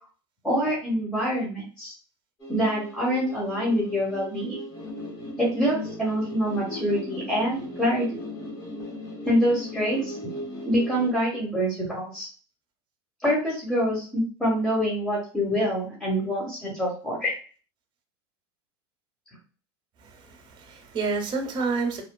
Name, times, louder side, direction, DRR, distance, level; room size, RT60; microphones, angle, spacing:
voice 1, 0.4-1.9 2.5-4.6 5.4-8.2 9.2-10.1 10.6-12.3 13.2-17.3, equal, 5° left, -6 dB, 1.2 m, -25 dB
sound 1, 2.4-11.1, left 1 dB, 30° left, 0.9 m, -37 dB
voice 2, 20.0-22.0, right 4 dB, 35° right, 4 dB, 0.9 m, -29 dB
3.2 x 2.2 x 2.2 m, 0.37 s
supercardioid pair, 110°, 14 cm